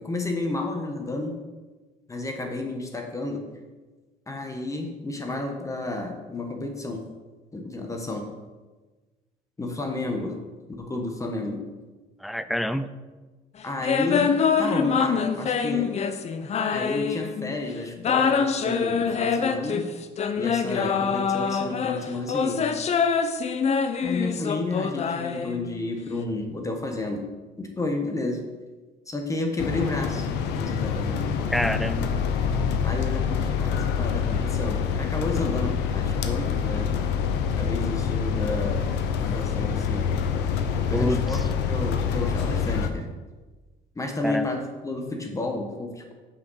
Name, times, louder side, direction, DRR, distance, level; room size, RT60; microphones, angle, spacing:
voice 1, 0.0-1.3 2.1-3.4 4.3-7.0 7.5-8.3 9.6-10.4 10.8-11.6 13.6-15.9 16.7-19.9 20.4-22.7 24.0-27.3 27.6-28.4 29.1-30.3 30.6-31.3 32.8-36.9 37.6-38.9 39.2-40.1 40.9-41.4 41.7-43.1 43.9-46.1, left 2 dB, 20° left, 3 dB, 1.1 m, -31 dB
voice 2, 12.2-12.9 31.5-32.1 40.9-41.4 44.2-44.5, equal, ahead, 12 dB, 0.3 m, -27 dB
sound 1, 13.8-17.6 18.0-25.9, left 6 dB, 40° left, 0.6 m, -25 dB
sound 2, 29.6-42.9, left 7 dB, 85° left, 0.7 m, -26 dB
5.9 x 5.0 x 6.3 m, 1.3 s
cardioid pair, 110°, 17 cm